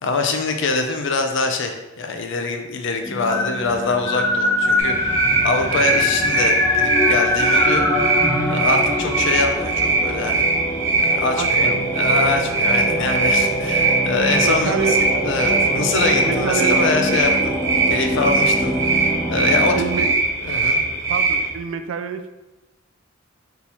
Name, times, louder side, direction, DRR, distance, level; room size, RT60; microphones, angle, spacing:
voice 1, 0.0-7.8 8.5-10.5 11.0-14.9 15.2-17.5 17.9-18.7 19.0-20.1 20.4-20.8, left 3 dB, 65° left, 5 dB, 0.5 m, -24 dB
sound 1, 3.0-20.1, left 1 dB, 15° left, 0.4 m, -24 dB
sound 2, 4.8-21.5, right 3 dB, 60° right, 0.9 m, -21 dB
voice 2, 11.4-11.9 14.4-15.1 16.2-17.1 19.7-20.1 21.1-22.3, right 6 dB, 80° right, 10 dB, 0.3 m, -27 dB
4.1 x 3.7 x 2.9 m, 1.0 s
head